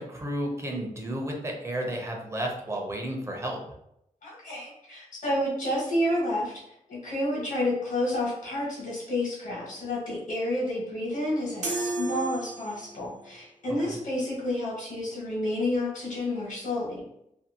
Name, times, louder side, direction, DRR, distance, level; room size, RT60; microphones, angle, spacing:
voice 1, 0.0-3.6 13.9-14.0, right 1 dB, 20° right, 0 dB, 0.5 m, -32 dB
voice 2, 4.2-6.5 6.9-17.0, left 1 dB, 90° left, -6 dB, 1.1 m, -30 dB
sound 1, 11.6-13.1, right 2 dB, 65° right, 0.7 m, -32 dB
2.6 x 2.4 x 2.7 m, 0.78 s
wide cardioid pair, 180°, 13 cm